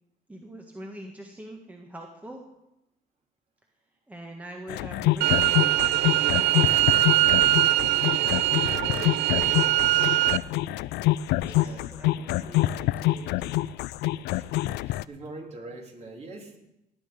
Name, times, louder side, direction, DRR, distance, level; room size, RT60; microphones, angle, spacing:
voice 1, 0.3-2.4 4.1-8.5 8.8-10.1 10.4-10.7 11.3-13.6, right 1 dB, 10° right, 1 dB, 1.6 m, -45 dB
sound 1, 4.7-15.0, left 16 dB, 85° left, 0.4 m, -26 dB
sound 2, 5.2-10.4, right 18 dB, 90° right, 0.5 m, -22 dB
voice 2, 11.4-12.0 12.4-12.9 14.3-14.5 14.9-16.6, right 2 dB, 40° right, 1 dB, 3.3 m, -43 dB
18.0 x 8.8 x 5.3 m, 0.88 s
cardioid pair, 110°, 17 cm